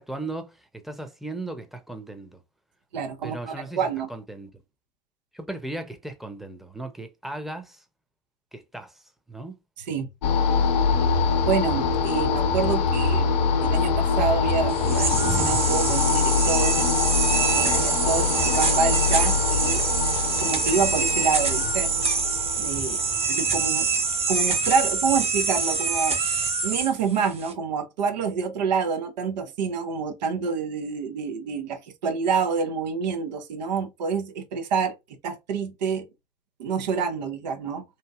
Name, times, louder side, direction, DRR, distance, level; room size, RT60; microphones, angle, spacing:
voice 1, 0.0-2.4 3.2-4.5 5.3-7.8 8.5-9.6, right 2 dB, ahead, 0.7 m, -37 dB
voice 2, 2.9-4.1 9.9-10.1 11.5-13.3 13.6-16.8 17.5-19.8 20.4-21.9 22.6-23.0 23.3-23.9 24.3-26.2 26.6-35.0 35.2-36.1 36.6-37.8, right 5 dB, 85° right, 0.5 m, -27 dB
sound 1, 10.2-24.4, left 5 dB, 80° left, 0.6 m, -24 dB
sound 2, 14.7-27.5, right 5 dB, 30° right, 1.0 m, -25 dB
2.9 x 2.6 x 2.3 m
hypercardioid pair, 65°, 21 cm